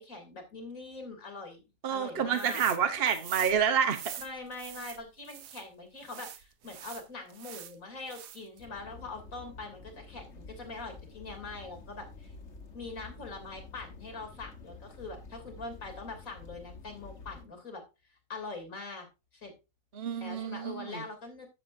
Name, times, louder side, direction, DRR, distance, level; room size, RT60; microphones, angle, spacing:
voice 1, 0.0-1.6 1.9-2.6 4.2-12.3 12.7-17.8 18.3-19.1 19.3-19.5 20.2-21.5, left 3 dB, 85° left, 3.5 m, -43 dB
voice 2, 1.8-4.1 19.9-21.0, right 7 dB, 50° right, 1.1 m, -28 dB
sound 1, 2.3-2.8 3.1-5.6 6.0-7.8 8.1-8.6, right 10 dB, 85° right, 1.2 m, -44 dB
sound 2, 8.6-17.4, left 4 dB, 55° left, 1.6 m, -49 dB
13.0 x 7.5 x 2.6 m
omnidirectional pair, 1.4 m